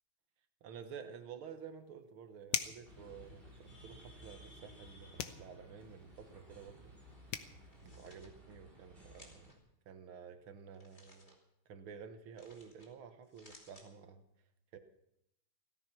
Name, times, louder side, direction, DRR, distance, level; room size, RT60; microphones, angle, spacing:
voice 1, 0.6-6.9 7.8-9.4 9.9-11.4 11.7-14.2 14.7-14.8, right 7 dB, 85° right, 8 dB, 2.0 m, -51 dB
sound 1, 1.5-1.6 2.5-2.9 5.2-5.5 7.0-7.1 7.3-7.5, left 9 dB, 75° left, 1.8 m, -37 dB
sound 2, 2.8-9.5, equal, 25° right, 4.7 m, -57 dB
sound 3, 7.6-8.3 9.1-9.6 10.7-11.4 12.4-12.9 13.2-13.9, left 1 dB, 20° left, 2.9 m, -61 dB
17.0 x 14.0 x 6.0 m, 0.78 s
omnidirectional pair, 2.2 m